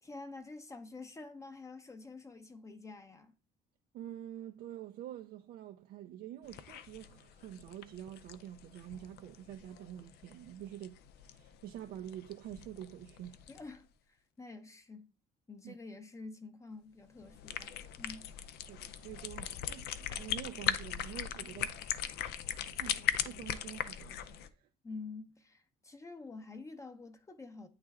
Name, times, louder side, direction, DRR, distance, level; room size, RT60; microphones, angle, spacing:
voice 1, 0.0-3.3 13.5-15.1 15.5-18.3 24.8-27.7, left 3 dB, 20° left, 0.6 m, -48 dB
voice 2, 3.9-13.4 15.6-15.8 18.7-21.8 22.8-24.7, right 11 dB, 65° right, 0.4 m, -47 dB
sound 1, 6.4-13.8 17.2-24.5, left 10 dB, 75° left, 0.5 m, -40 dB
8.6 x 3.2 x 3.5 m
cardioid pair, 110°, 17 cm